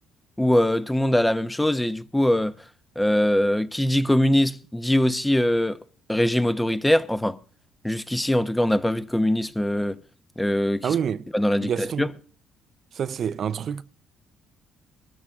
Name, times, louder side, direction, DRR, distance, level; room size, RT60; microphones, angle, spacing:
voice 1, 0.4-2.5 3.0-5.8 6.1-7.4 7.8-10.0 10.4-10.9 11.3-12.1, left 1 dB, 5° left, 1.0 m, -22 dB
voice 2, 10.8-11.2 11.6-12.1 12.9-13.8, right 8 dB, 55° right, 0.6 m, -27 dB
20.5 x 13.5 x 3.7 m
cardioid pair, 85°, 0 cm